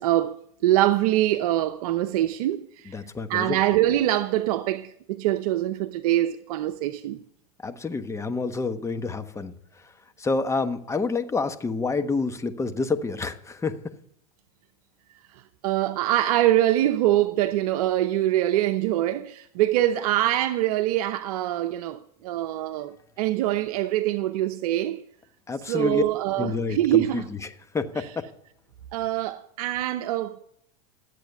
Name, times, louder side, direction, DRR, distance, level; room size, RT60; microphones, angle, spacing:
voice 1, 0.0-3.0 3.3-7.2 15.6-25.0 25.7-27.3 28.9-30.4, right 14 dB, 70° right, 0.8 m, -24 dB
voice 2, 2.8-3.6 7.6-9.5 10.2-13.8 25.5-26.0 26.4-28.3, left 4 dB, 15° left, 1.2 m, -28 dB
13.5 x 8.4 x 9.4 m
hypercardioid pair, 105°, 20 cm